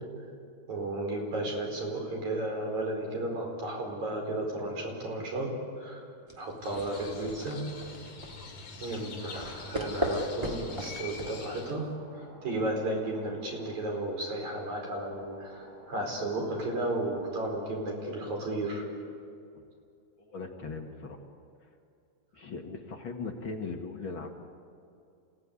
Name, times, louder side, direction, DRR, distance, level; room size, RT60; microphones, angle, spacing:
voice 1, 0.7-5.5 5.8-6.0 6.4-7.6 8.8-11.9 12.4-18.8, right 1 dB, 75° right, 1 dB, 6.1 m, -33 dB
sound 1, 6.3-11.9, equal, 10° right, 2.6 m, -38 dB
Crow, 6.6-11.7, left 4 dB, 70° left, 4.0 m, -44 dB
sound 2, 9.3-17.7, equal, 35° right, 6.5 m, -53 dB
voice 2, 20.2-21.2 21.6-21.7 22.3-24.3, left 4 dB, 45° left, 2 dB, 2.4 m, -39 dB
27.5 x 17.5 x 9.7 m, 2.5 s
omnidirectional pair, 3.3 m